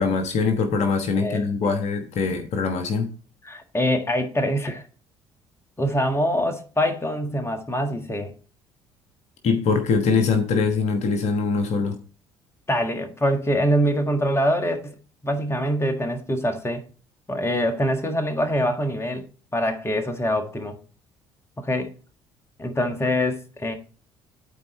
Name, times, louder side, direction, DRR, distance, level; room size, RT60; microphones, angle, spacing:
voice 1, 0.0-3.1 9.4-12.0, left 4 dB, 55° left, 1.2 m, -23 dB
voice 2, 1.2-1.7 3.4-4.8 5.8-8.3 12.7-15.0 15.2-16.8 17.3-19.2 19.5-20.8 21.6-21.9 22.6-23.8, equal, 20° left, 1.6 m, -24 dB
12.0 x 4.5 x 3.1 m
figure-of-eight pair, 55°, 14 cm